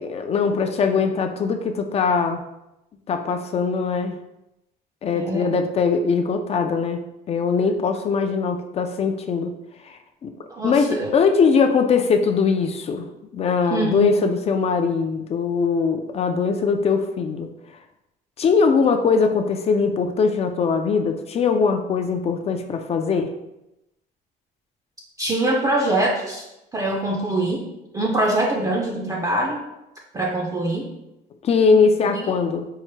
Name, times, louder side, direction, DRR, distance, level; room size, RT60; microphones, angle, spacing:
voice 1, 0.0-2.4 3.1-4.2 5.0-9.6 9.8-10.3 10.6-17.5 18.4-23.3 31.4-32.7, left 5 dB, 40° left, 6 dB, 0.4 m, -21 dB
voice 2, 5.2-5.5 10.5-11.1 13.7-14.1 25.2-26.4 26.7-27.6 27.9-29.6 30.1-30.9 32.1-32.2, right 1 dB, 20° right, -1 dB, 0.4 m, -23 dB
4.6 x 2.1 x 3.1 m, 0.90 s
cardioid pair, 110°, 17 cm